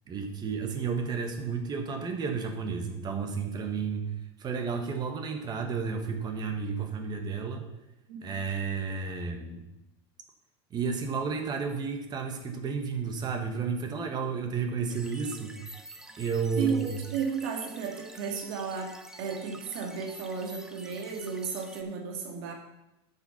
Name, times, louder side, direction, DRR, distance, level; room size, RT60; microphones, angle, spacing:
voice 1, 0.1-7.7 8.2-9.6 10.7-15.7 16.2-17.0, right 5 dB, 30° right, 4 dB, 1.4 m, -32 dB
penta river, 14.9-21.8, right 1 dB, 5° right, 0.7 m, -48 dB
voice 2, 16.6-22.5, right 6 dB, 70° right, 3 dB, 1.9 m, -33 dB
8.5 x 5.7 x 7.1 m, 0.93 s
supercardioid pair, 135°, 14 cm